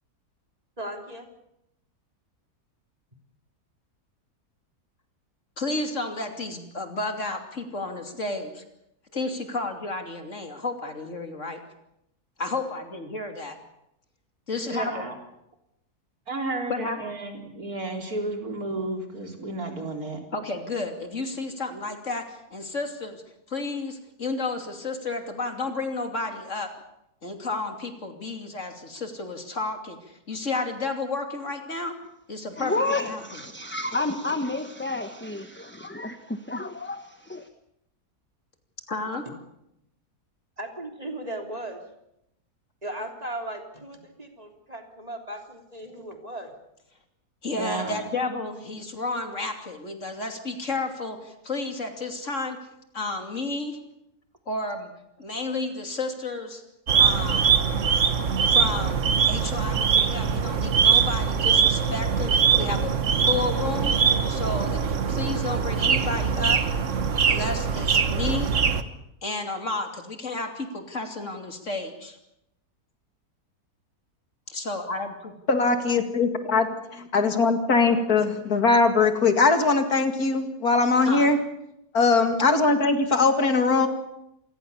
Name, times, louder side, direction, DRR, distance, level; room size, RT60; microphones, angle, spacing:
voice 1, 0.8-1.3 39.3-39.4 40.6-41.8 42.8-46.5, right 1 dB, 25° right, 4 dB, 3.4 m, -37 dB
voice 2, 5.6-8.6 9.1-11.6 12.4-13.6 14.5-15.1 16.7-17.0 20.3-23.2 23.5-26.7 27.2-32.0 32.3-33.2 38.9-39.2 47.4-52.6 52.9-53.8 54.5-54.9 55.2-56.6 57.0-57.5 58.5-63.0 63.3-64.0 64.3-66.6 67.3-68.5 69.2-72.2 74.5-75.3 81.0-81.3, left 3 dB, 50° left, 5 dB, 3.2 m, -32 dB
voice 3, 14.7-15.1 16.3-20.2 47.5-48.0, right 2 dB, 70° right, 3 dB, 4.4 m, -32 dB
voice 4, 32.6-36.2 36.5-37.0 37.3-37.5, left 2 dB, 10° left, 8 dB, 1.0 m, -30 dB
sound 1, 56.9-68.8, right 6 dB, 55° right, 1.6 m, -22 dB
voice 5, 75.5-81.4 81.9-83.9, left 4 dB, 70° left, 7 dB, 2.6 m, -21 dB
27.5 x 20.5 x 7.1 m, 0.82 s
omnidirectional pair, 1.6 m